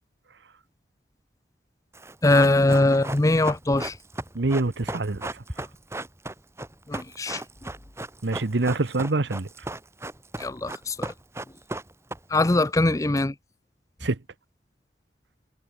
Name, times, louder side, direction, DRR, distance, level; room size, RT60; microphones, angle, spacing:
Run, 1.9-12.6 12.8-12.9, right 1 dB, 15° right, 2.5 m, -36 dB
voice 1, 2.2-3.9 6.9-7.4 10.4-11.1 12.3-13.3, left 2 dB, 20° left, 0.6 m, -21 dB
voice 2, 4.3-5.3 8.2-9.5 14.0-14.2, right 2 dB, 85° right, 1.0 m, -25 dB
head